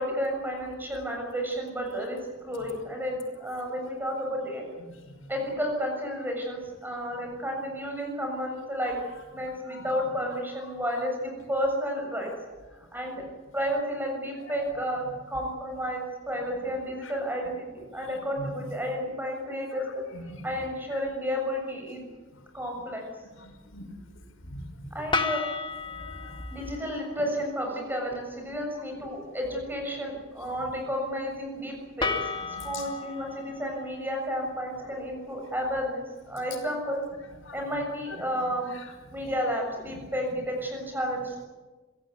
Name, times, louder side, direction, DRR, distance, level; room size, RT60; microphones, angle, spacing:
voice 1, 0.0-4.6 5.3-9.0 9.3-12.3 12.7-13.2 13.5-20.0 20.4-22.0 22.5-23.0 24.9-25.4 26.5-37.0 37.5-38.7 39.1-41.5, equal, 10° right, 2 dB, 7.0 m, -32 dB
voice 2, 20.1-20.5 20.9-21.0 23.4-23.9 24.4-24.9 25.9-26.4 32.5-32.9 37.4-37.6 38.7-38.9, left 1 dB, 85° left, 4 dB, 5.5 m, -42 dB
sound 1, 25.1-27.2 32.0-35.2, left 4 dB, 25° left, 1.7 m, -34 dB
26.5 x 17.5 x 9.4 m, 1.3 s
head